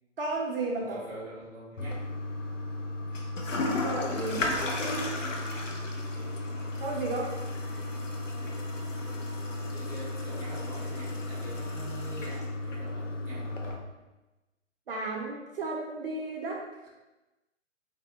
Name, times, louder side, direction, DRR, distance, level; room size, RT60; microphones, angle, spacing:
voice 1, 0.2-1.0 3.8-4.4 6.8-7.3 14.9-16.9, right 3 dB, 50° right, -2 dB, 0.6 m, -33 dB
voice 2, 0.8-2.0 4.2-5.4 9.7-13.7, equal, 5° right, -11 dB, 0.6 m, -45 dB
Toilet flush, 1.8-13.7, left 2 dB, 85° left, 0.6 m, -34 dB
3.3 x 2.0 x 2.9 m, 1.1 s
figure-of-eight pair, 130°, 37 cm